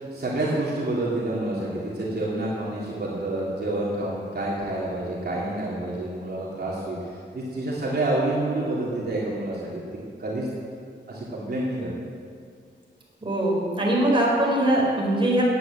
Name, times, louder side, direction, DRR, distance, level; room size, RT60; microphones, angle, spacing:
voice 1, 0.0-9.8 10.2-10.5 11.1-11.9, right 2 dB, 60° right, -6 dB, 3.2 m, -28 dB
voice 2, 13.2-15.4, right 1 dB, 25° right, -3 dB, 4.6 m, -22 dB
17.5 x 9.5 x 7.7 m, 2.2 s
wide cardioid pair, 120°, 19 cm